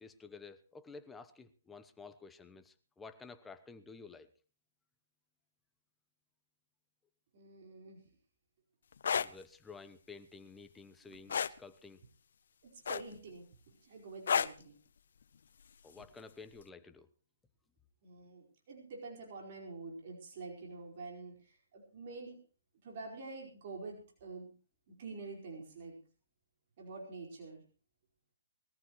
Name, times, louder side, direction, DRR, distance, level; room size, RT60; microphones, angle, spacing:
voice 1, 0.0-4.3 9.2-12.0 15.8-17.1, left 4 dB, 10° left, 10 dB, 1.0 m, -52 dB
voice 2, 7.3-8.0 11.0-11.2 12.6-14.7 15.9-16.0 18.0-22.4 22.8-24.5 24.9-26.0 26.8-27.6, right 3 dB, 50° right, 0 dB, 4.8 m, -47 dB
sound 1, 8.9-9.3 11.3-11.6 12.9-13.3 14.3-14.6 16.0-16.2, left 7 dB, 65° left, 0.7 m, -31 dB
21.0 x 14.5 x 3.1 m, 0.37 s
hypercardioid pair, 150°, 0 cm